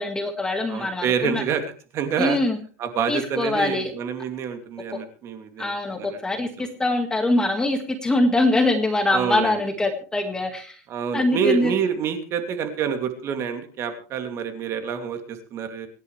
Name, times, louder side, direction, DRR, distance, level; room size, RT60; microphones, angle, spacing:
voice 1, 0.0-1.4 2.2-2.6 3.1-3.9 5.6-10.8 11.1-11.7, left 2 dB, 10° left, 5 dB, 1.8 m, -23 dB
voice 2, 0.7-1.6 1.9-2.4 2.8-6.7 9.1-9.6 10.9-15.9, right 7 dB, 30° right, 7 dB, 2.6 m, -27 dB
25.5 x 10.5 x 3.3 m, 0.40 s
supercardioid pair, 150°, 8 cm